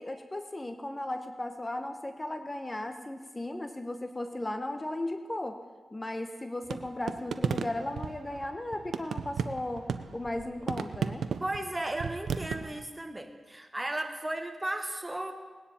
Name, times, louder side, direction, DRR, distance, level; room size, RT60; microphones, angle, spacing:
voice 1, 0.0-5.6 5.9-9.9 10.1-11.2, left 1 dB, 25° left, 7 dB, 1.0 m, -36 dB
sound 1, 6.7-12.8, right 6 dB, 90° right, 0.5 m, -34 dB
voice 2, 11.4-15.3, right 1 dB, 20° right, 6 dB, 1.5 m, -35 dB
19.5 x 9.9 x 4.3 m, 1.4 s
cardioid pair, 55°, 0 cm